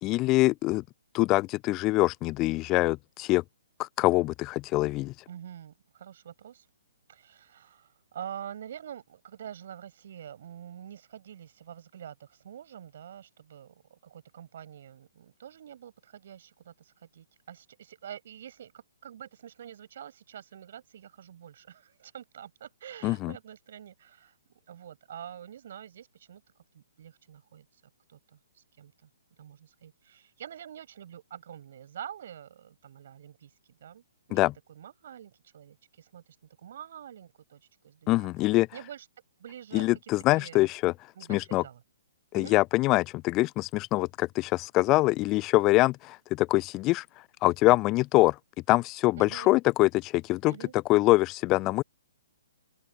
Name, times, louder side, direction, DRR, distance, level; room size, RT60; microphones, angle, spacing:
voice 1, 0.0-0.8 1.1-3.4 3.8-5.1 23.0-23.3 34.3-34.5 38.1-38.7 39.7-40.9 41.3-41.6 42.3-47.0 47.4-48.4 48.7-50.5 50.9-51.8, left 20 dB, 25° left, 0.4 m, -24 dB
voice 2, 5.3-6.7 7.1-26.4 26.7-27.8 28.1-29.1 29.4-33.5 33.8-39.1 39.4-40.6 41.1-41.8 42.3-42.6 49.2-49.5 50.5-50.7, right 9 dB, 50° right, 7.8 m, -46 dB
open air
figure-of-eight pair, 125°, 0 cm